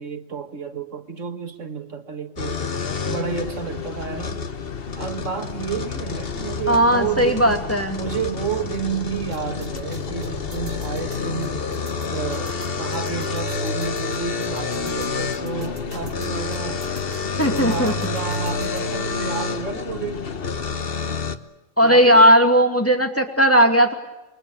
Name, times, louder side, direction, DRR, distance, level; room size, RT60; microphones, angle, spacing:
voice 1, 0.0-2.6 3.1-4.5 5.0-11.7 12.1-16.8 17.5-20.2 21.8-22.2, right 7 dB, 70° right, 8 dB, 2.0 m, -31 dB
sound 1, 2.4-21.4, left 5 dB, 45° left, 1.3 m, -28 dB
voice 2, 6.7-8.0 17.4-17.9 21.8-23.9, equal, 10° left, 4 dB, 2.5 m, -16 dB
sound 2, 9.3-18.8, right 2 dB, 45° right, 3.2 m, -42 dB
28.0 x 23.0 x 8.8 m, 0.99 s
omnidirectional pair, 1.4 m